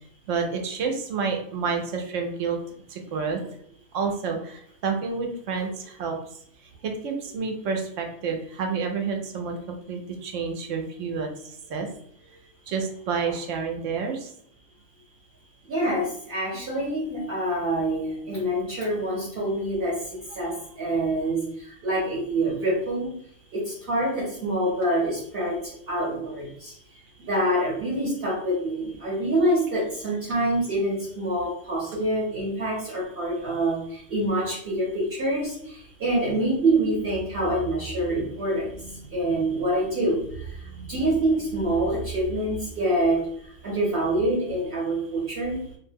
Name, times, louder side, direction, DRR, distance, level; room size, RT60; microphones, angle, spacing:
voice 1, 0.3-2.6 2.9-3.6 3.9-6.2 6.8-11.9 12.7-14.3 16.5-16.7, right 5 dB, 85° right, 3 dB, 1.0 m, -29 dB
voice 2, 15.7-20.0 20.4-23.1 23.5-26.7 27.3-43.2 43.6-45.6, right 1 dB, 55° right, -6 dB, 1.0 m, -26 dB
2.6 x 2.1 x 3.3 m, 0.67 s
omnidirectional pair, 1.2 m